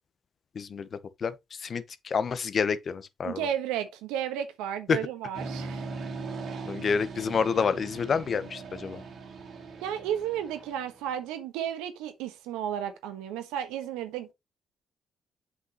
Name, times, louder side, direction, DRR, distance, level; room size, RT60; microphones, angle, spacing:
voice 1, 0.6-0.9 1.2-1.3 1.6-3.4 4.9-5.0 6.7-9.0, left 6 dB, 50° left, 0.8 m, -28 dB
voice 2, 3.2-5.9 6.4-6.6 9.8-14.3, right 10 dB, 90° right, 1.2 m, -33 dB
sound 1, 5.3-11.1, right 4 dB, 65° right, 2.2 m, -40 dB
7.5 x 5.7 x 3.0 m
supercardioid pair, 60°, 0 cm